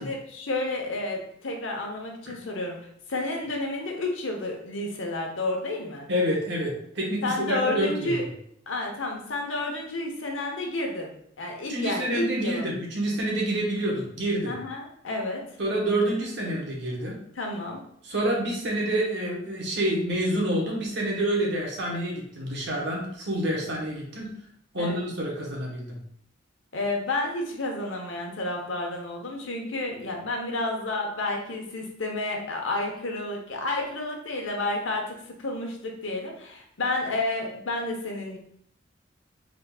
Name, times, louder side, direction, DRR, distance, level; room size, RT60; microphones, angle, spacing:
voice 1, 0.0-2.8 3.1-6.1 7.2-8.2 8.7-11.1 11.4-12.7 14.5-15.4 17.4-17.8 24.7-25.0 26.7-38.4, left 2 dB, 85° left, 1 dB, 0.9 m, -30 dB
voice 2, 6.1-8.2 11.7-14.6 15.6-17.2 18.0-24.3 24.7-26.0, right 1 dB, 65° right, -2 dB, 1.1 m, -28 dB
3.8 x 3.6 x 2.3 m, 0.68 s
head